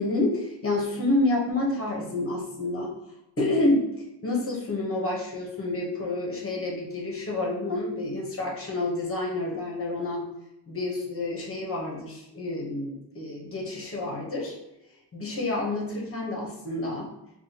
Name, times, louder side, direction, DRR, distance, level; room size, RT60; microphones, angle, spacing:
voice 1, 0.0-2.9 3.4-3.9 4.2-10.2 10.7-14.5 15.1-17.1, left 2 dB, 30° left, -1 dB, 1.0 m, -28 dB
5.4 x 2.4 x 2.8 m, 0.88 s
wide cardioid pair, 135°, 44 cm